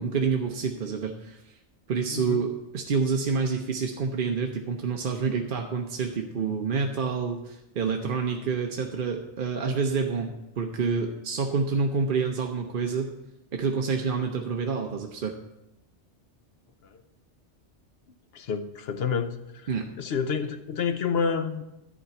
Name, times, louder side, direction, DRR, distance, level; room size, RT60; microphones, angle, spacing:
voice 1, 0.0-1.4 1.9-13.1 13.5-15.4 19.7-19.9, right 5 dB, 50° right, 3 dB, 0.9 m, -28 dB
voice 2, 2.1-2.4 16.8-17.0 18.3-19.7 20.0-21.6, left 6 dB, 60° left, 9 dB, 0.9 m, -29 dB
11.0 x 4.3 x 8.0 m, 0.90 s
omnidirectional pair, 1.2 m